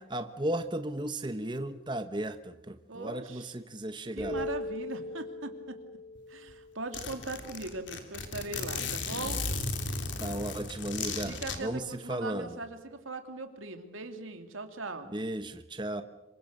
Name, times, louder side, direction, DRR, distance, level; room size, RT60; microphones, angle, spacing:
voice 1, 0.1-4.5 10.2-12.6 15.1-16.0, right 1 dB, 25° right, 9 dB, 1.1 m, -35 dB
voice 2, 2.9-3.5 4.1-5.8 6.3-9.4 11.3-15.1, right 3 dB, 85° right, 6 dB, 2.8 m, -40 dB
sound 1, 4.2-7.7, left 2 dB, 5° left, 5.4 m, -40 dB
Zipper (clothing), 6.1-6.2 6.5-6.6 6.9-11.6, left 4 dB, 65° left, 3.2 m, -35 dB
26.5 x 23.5 x 6.7 m, 0.97 s
head